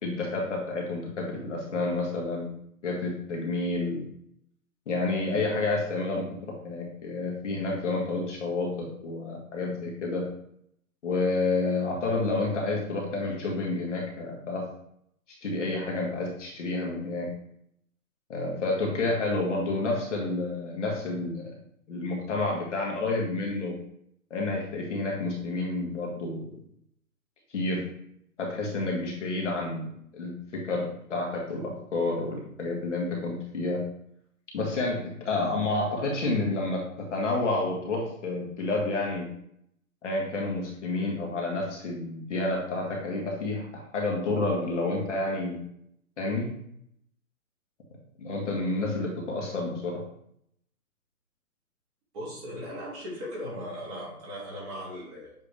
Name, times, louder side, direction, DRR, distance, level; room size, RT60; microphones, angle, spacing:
voice 1, 0.0-2.5 2.8-4.1 4.9-6.3 6.6-10.2 11.0-14.6 15.4-17.3 18.3-21.5 21.9-23.7 24.3-26.4 27.5-27.9 28.4-29.9 30.1-33.8 34.5-39.3 40.0-43.6 43.9-45.6 46.2-46.5 48.2-50.0, left 2 dB, 50° left, -1 dB, 1.9 m, -29 dB
voice 2, 52.1-55.3, equal, 20° right, -6 dB, 1.8 m, -38 dB
7.9 x 3.5 x 3.4 m, 0.72 s
hypercardioid pair, 160°, 45 cm